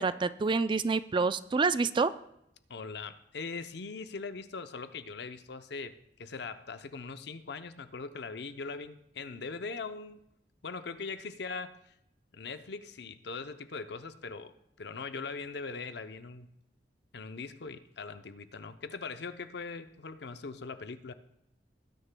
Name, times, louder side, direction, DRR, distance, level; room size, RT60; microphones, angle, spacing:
voice 1, 0.0-2.1, right 4 dB, 25° right, 13 dB, 0.3 m, -27 dB
voice 2, 2.7-5.9 6.2-10.2 10.6-11.8 12.3-14.5 14.8-16.5 17.1-21.1, left 4 dB, 65° left, 10 dB, 0.7 m, -41 dB
18.5 x 10.0 x 2.2 m, 0.79 s
head